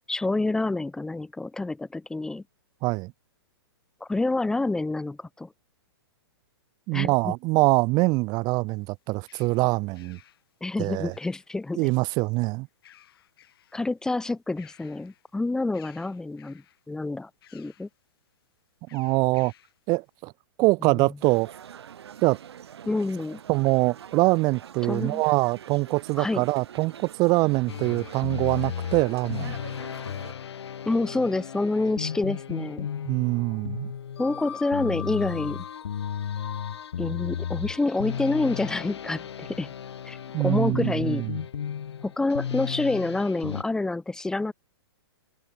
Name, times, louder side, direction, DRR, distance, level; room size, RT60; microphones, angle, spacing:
voice 1, 0.1-2.4 4.0-5.5 6.9-7.3 10.6-11.9 13.7-17.9 20.8-21.1 22.9-23.4 24.8-25.2 26.2-26.5 30.9-32.9 34.2-35.6 37.0-39.7 40.1-41.3 42.0-44.5, left 2 dB, 5° left, 1.1 m, -28 dB
voice 2, 2.8-3.1 6.9-10.2 10.8-11.1 11.8-12.7 18.9-19.5 19.9-20.3 20.6-21.5 22.2-22.4 23.5-29.6 33.0-33.9 40.3-41.4, right 24 dB, 30° right, 0.8 m, -24 dB
sound 1, 8.7-11.8 12.7-13.9 14.3-15.3 15.7-16.9 17.4-17.9 18.9-19.8, left 11 dB, 65° left, 3.8 m, -56 dB
sound 2, 21.2-30.3, right 9 dB, 75° right, 4.6 m, -45 dB
sound 3, 27.7-43.6, left 8 dB, 80° left, 2.0 m, -34 dB
hypercardioid pair, 145°, 14 cm